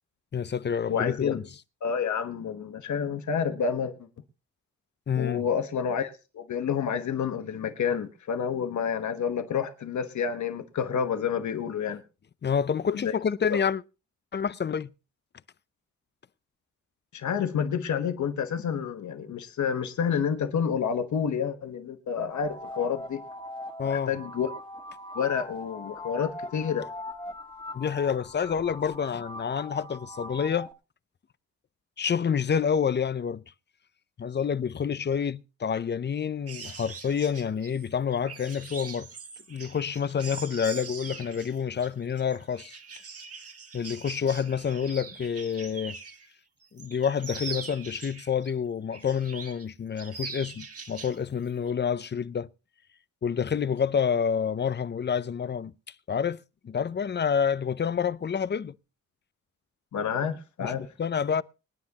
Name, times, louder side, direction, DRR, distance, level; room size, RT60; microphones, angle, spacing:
voice 1, 0.3-1.4 5.1-5.5 12.4-13.8 14.3-14.9 23.8-24.1 27.7-30.7 32.0-33.4 34.2-39.1 39.5-42.8 43.7-46.0 46.7-52.5 53.2-55.7 56.1-56.4 56.6-58.7 60.6-61.4, left 7 dB, 35° left, 0.6 m, -28 dB
voice 2, 0.9-1.4 1.8-4.1 5.2-12.0 12.9-13.1 13.5-13.6 17.1-23.2 23.8-24.5 25.1-26.9 59.9-60.9, left 7 dB, 80° left, 1.2 m, -29 dB
sound 1, 22.3-30.7, left 1 dB, 15° left, 1.8 m, -40 dB
sound 2, 36.5-46.3 46.6-48.5 48.9-49.7 50.0-51.2 51.5-51.7, right 5 dB, 55° right, 1.7 m, -42 dB
24.5 x 9.7 x 2.9 m
cardioid pair, 95°, 29 cm